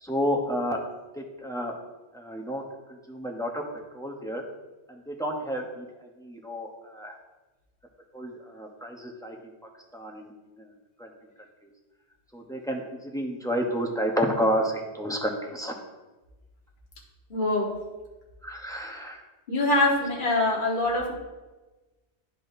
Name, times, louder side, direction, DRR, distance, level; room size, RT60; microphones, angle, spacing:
voice 1, 0.0-0.8 1.1-1.7 2.1-2.6 3.1-3.6 3.9-4.4 4.9-5.8 6.2-7.2 8.1-9.4 9.9-10.3 11.0-11.1 12.3-15.7 18.4-19.2, equal, 5° left, 1 dB, 0.6 m, -30 dB
voice 2, 17.3-17.7 19.5-21.1, left 2 dB, 50° left, -3 dB, 1.3 m, -24 dB
12.0 x 4.2 x 2.6 m, 1.2 s
omnidirectional pair, 1.1 m